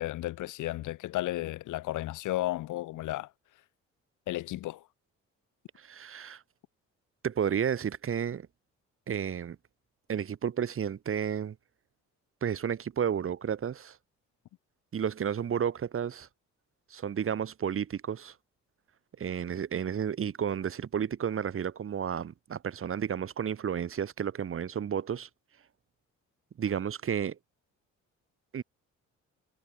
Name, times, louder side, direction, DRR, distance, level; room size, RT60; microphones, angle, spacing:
voice 1, 0.0-3.3 4.3-4.8, left 16 dB, 80° left, 1.0 m, -33 dB
voice 2, 5.8-6.4 7.2-8.5 9.1-9.6 10.1-11.5 12.4-14.0 14.9-16.3 16.9-18.3 19.2-25.3 26.6-27.4 28.5-28.6, right 8 dB, 45° right, 1.4 m, -32 dB
cardioid pair, 90°, 30 cm